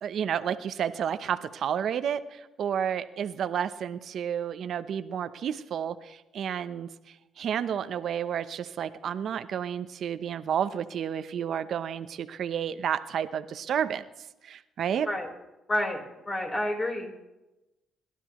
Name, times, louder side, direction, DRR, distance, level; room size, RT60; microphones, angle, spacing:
voice 1, 0.0-6.9 7.4-14.0 14.4-15.1, right 8 dB, 65° right, 12 dB, 0.8 m, -31 dB
voice 2, 15.7-17.2, left 1 dB, 30° left, 1 dB, 4.1 m, -30 dB
28.0 x 12.0 x 3.1 m, 0.99 s
cardioid pair, 90°, 0 cm